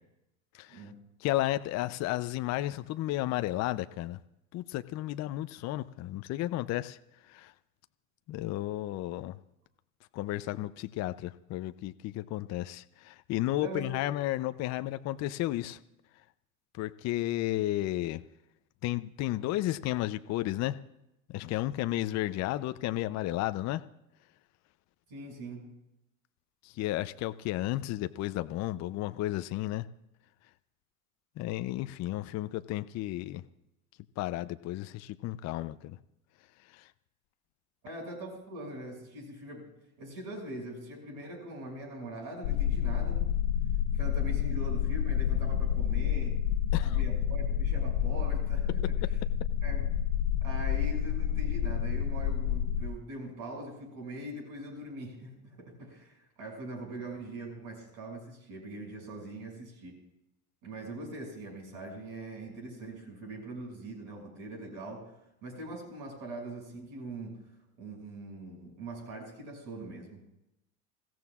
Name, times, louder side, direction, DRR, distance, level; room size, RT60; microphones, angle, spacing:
voice 1, 0.5-0.9 1.2-4.2 4.5-7.0 7.2-7.5 8.3-9.4 10.1-15.8 16.7-18.2 18.8-20.8 21.3-23.8 26.6-29.9 31.4-33.4 34.2-36.0 36.6-36.9 46.7-47.0, left 15 dB, 40° left, 11 dB, 0.6 m, -33 dB
voice 2, 13.5-14.0 25.1-25.7 37.8-39.7 40.0-43.2 43.9-46.4 46.8-48.8 49.6-49.9 50.4-60.0 60.6-65.1 65.4-67.4 67.8-70.2, right 1 dB, 55° right, 0 dB, 6.6 m, -42 dB
sound 1, 42.4-52.8, left 9 dB, 75° left, 0.9 m, -29 dB
27.0 x 15.5 x 2.4 m, 0.87 s
hypercardioid pair, 95°, 42 cm